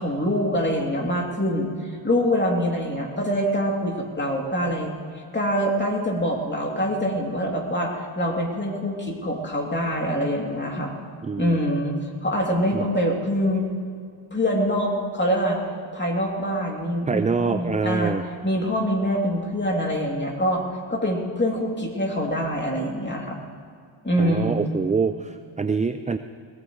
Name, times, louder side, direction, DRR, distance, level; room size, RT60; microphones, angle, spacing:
voice 1, 0.0-1.7 2.0-4.9 5.3-10.9 11.4-13.6 14.3-15.6 15.9-18.1 18.4-20.6 20.9-23.4 24.0-24.7, equal, 20° left, -1 dB, 2.9 m, -24 dB
voice 2, 11.2-11.6 12.7-12.8 17.1-18.2 24.2-26.2, right 5 dB, 15° right, 9 dB, 0.4 m, -25 dB
21.5 x 18.0 x 3.2 m, 2.2 s
cardioid pair, 100°, 49 cm